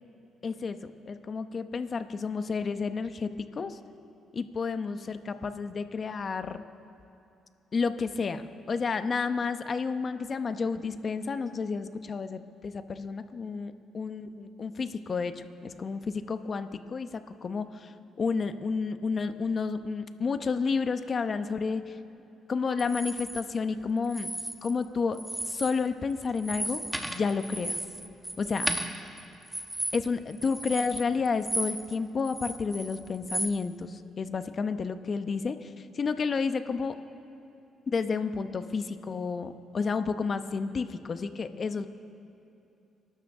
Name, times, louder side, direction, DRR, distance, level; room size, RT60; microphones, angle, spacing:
voice 1, 0.4-3.8 4.3-6.6 7.7-17.9 18.2-22.0 22.5-24.3 24.6-25.2 25.5-26.8 27.1-27.8 28.4-28.7 29.9-37.0 37.9-41.9, left 5 dB, 45° left, 9 dB, 0.9 m, -31 dB
sound 1, 22.8-23.4 24.0-24.9 25.1-25.8 26.1-32.0 32.2-33.5, right 1 dB, 5° right, 1.3 m, -34 dB
29.5 x 12.5 x 3.7 m, 2.8 s
cardioid pair, 90°, 0 cm